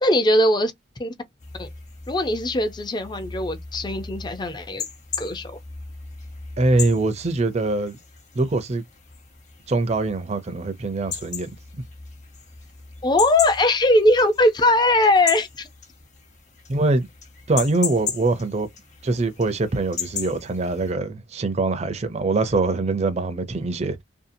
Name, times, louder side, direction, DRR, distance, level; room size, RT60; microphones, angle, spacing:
voice 1, 0.0-0.7 1.0-1.1 1.6-1.7 2.1-4.8 5.2-5.6 13.0-15.7, left 1 dB, 25° left, 0.5 m, -20 dB
sound 1, 1.4-20.9, left 6 dB, 40° left, 1.0 m, -37 dB
voice 2, 6.6-8.0 8.3-8.8 9.7-11.8 16.7-17.1 17.5-18.7 19.0-24.0, right 2 dB, 40° right, 0.5 m, -23 dB
2.7 x 2.3 x 2.6 m
head